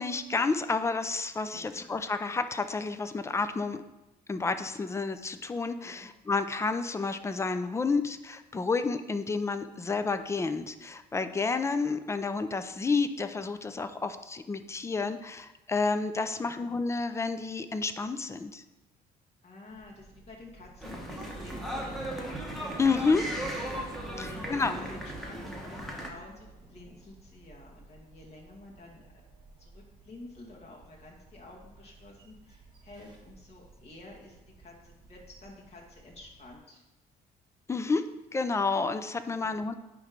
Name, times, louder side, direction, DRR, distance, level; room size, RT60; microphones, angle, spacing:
voice 1, 0.0-3.8 4.3-18.6 22.8-23.3 24.2-24.8 37.7-38.0 38.3-39.7, left 4 dB, 15° left, 10 dB, 0.5 m, -30 dB
voice 2, 1.5-1.9 5.8-6.1 16.4-16.7 19.4-22.2 24.1-29.0 29.6-36.8 39.2-39.4, left 2 dB, 40° left, -2 dB, 2.0 m, -50 dB
sound 1, 19.7-36.6, right 3 dB, 25° right, 1.4 m, -52 dB
sound 2, 20.8-26.1, equal, ahead, 1.3 m, -37 dB
9.4 x 3.2 x 5.1 m, 1.0 s
cardioid pair, 110°, 17 cm